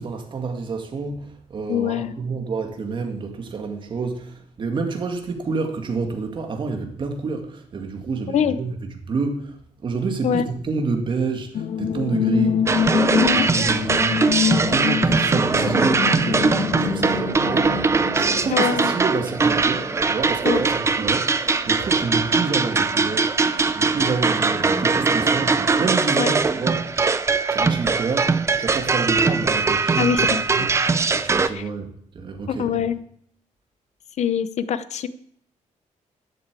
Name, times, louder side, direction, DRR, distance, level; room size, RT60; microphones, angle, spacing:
voice 1, 0.0-12.7 13.5-26.9 27.5-30.2 30.5-30.7 31.2-32.8, right 4 dB, 40° right, 4 dB, 2.1 m, -28 dB
voice 2, 1.7-2.1 8.3-8.6 10.2-10.4 13.2-13.4 18.5-18.9 20.4-20.6 26.2-26.3 30.0-30.7 31.5-31.7 32.5-33.0 34.2-35.1, left 8 dB, 60° left, 14 dB, 0.8 m, -23 dB
sound 1, 11.5-21.1 21.4-21.5, left 9 dB, 85° left, 1.5 m, -26 dB
sound 2, 12.7-31.5, right 4 dB, 20° right, 0.6 m, -21 dB
12.0 x 7.9 x 8.3 m, 0.65 s
wide cardioid pair, 170°, 13 cm